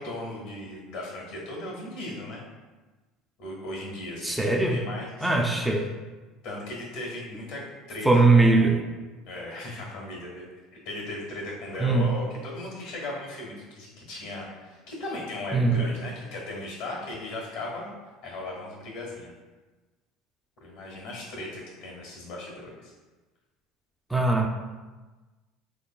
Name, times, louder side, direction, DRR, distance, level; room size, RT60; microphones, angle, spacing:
voice 1, 0.0-2.4 3.4-5.8 6.4-8.8 9.2-10.5 10.8-17.9 18.2-19.3 20.6-22.9, left 1 dB, 80° left, -2 dB, 1.5 m, -37 dB
voice 2, 4.2-4.8 5.2-5.8 8.0-8.8 11.8-12.1 15.5-15.8 24.1-24.5, right 3 dB, ahead, 0 dB, 0.4 m, -20 dB
3.7 x 3.5 x 2.3 m, 1.2 s
supercardioid pair, 115°, 0 cm